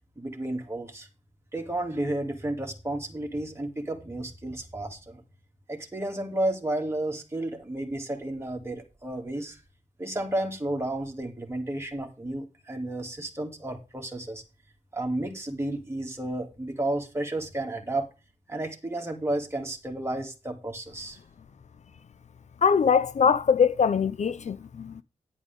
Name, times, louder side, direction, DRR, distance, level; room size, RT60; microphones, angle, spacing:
voice 1, 0.2-1.1 1.5-5.2 5.7-9.6 10.0-14.4 14.9-18.1 18.5-21.2, right 1 dB, 20° right, 2.6 m, -32 dB
voice 2, 22.6-25.0, left 6 dB, 60° left, 0.5 m, -22 dB
10.5 x 8.7 x 3.6 m
wide cardioid pair, 85°, 14 cm